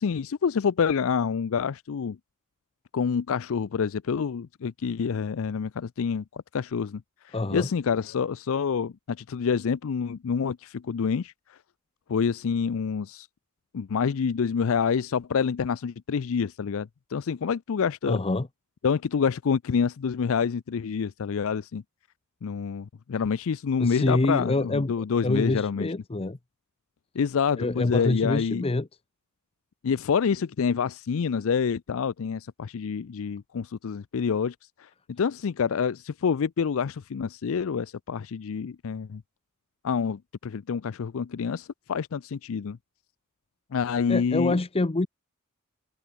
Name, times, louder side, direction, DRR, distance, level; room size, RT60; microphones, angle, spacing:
voice 1, 0.0-2.2 2.9-11.6 12.1-13.3 13.7-18.2 18.8-21.8 22.4-25.9 27.2-28.6 29.8-39.2 39.8-42.8 43.7-44.6, left 6 dB, 65° left, 0.4 m, -27 dB
voice 2, 7.3-7.7 18.1-18.5 23.8-24.9 25.2-26.4 27.6-28.9 44.1-45.1, left 2 dB, 25° left, 0.7 m, -26 dB
head